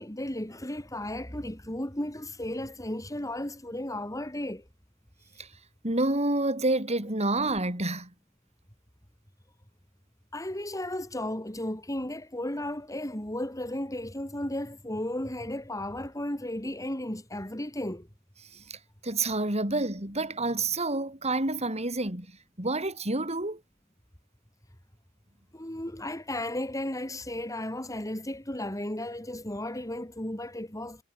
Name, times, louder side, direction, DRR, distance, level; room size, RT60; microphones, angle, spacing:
voice 1, 0.0-4.6 10.3-18.1 25.5-31.0, left 1 dB, 15° left, 4.1 m, -34 dB
voice 2, 5.8-8.1 18.7-18.8 19.0-22.3 22.6-23.6, right 2 dB, 30° right, 7.0 m, -28 dB
head